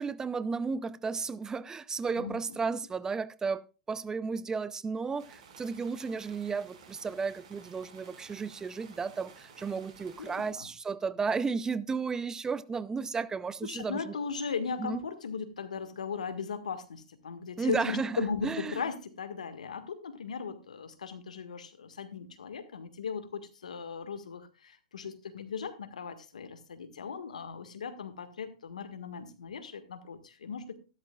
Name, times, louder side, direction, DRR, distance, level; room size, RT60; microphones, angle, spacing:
voice 1, 0.0-14.2 14.8-15.0 17.6-18.8, right 5 dB, 15° right, 0.6 m, -33 dB
voice 2, 2.2-2.6 10.2-10.7 13.6-30.8, left 6 dB, 85° left, 1.7 m, -37 dB
sound 1, 5.2-10.5, right 5 dB, 60° right, 5.4 m, -54 dB
14.0 x 12.5 x 2.4 m
hypercardioid pair, 110°, 4 cm